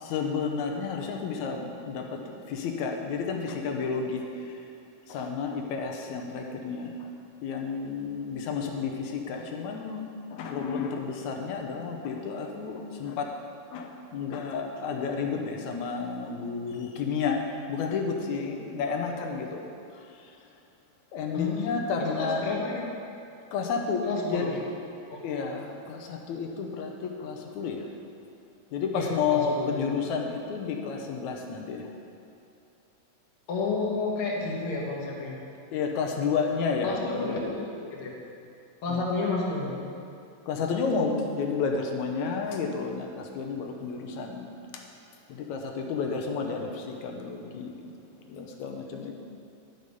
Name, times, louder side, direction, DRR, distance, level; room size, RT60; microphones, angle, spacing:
voice 1, 0.0-4.5 5.1-7.1 7.4-13.3 13.7-17.4 17.7-19.7 21.1-22.5 23.5-24.5 25.2-27.9 28.7-31.9 35.7-37.6 38.9-39.0 40.5-44.5 45.3-48.0 48.3-49.1, left 5 dB, 75° left, 2 dB, 2.2 m, -31 dB
voice 2, 21.3-21.7 22.0-22.8 24.0-24.6 25.1-25.2 28.9-29.7 33.5-35.3 36.8-38.1 38.8-39.7 46.4-46.5, left 3 dB, 50° left, -3 dB, 1.9 m, -31 dB
11.0 x 6.5 x 5.4 m, 2.5 s
omnidirectional pair, 3.5 m